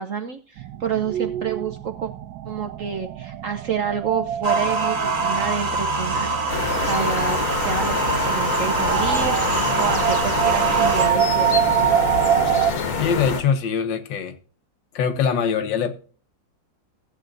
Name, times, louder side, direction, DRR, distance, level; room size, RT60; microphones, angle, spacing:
voice 1, 0.0-2.1 2.4-7.9 8.2-11.7, right 7 dB, 60° right, 0.8 m, -29 dB
sound 1, 0.6-12.7, right 10 dB, 90° right, 1.4 m, -25 dB
sound 2, 4.4-11.1, right 2 dB, 30° right, 1.5 m, -24 dB
sound 3, 6.5-13.4, left 5 dB, 55° left, 1.6 m, -26 dB
voice 2, 12.9-14.4 14.9-15.9, left 7 dB, 75° left, 1.7 m, -23 dB
14.5 x 7.9 x 2.5 m
omnidirectional pair, 2.0 m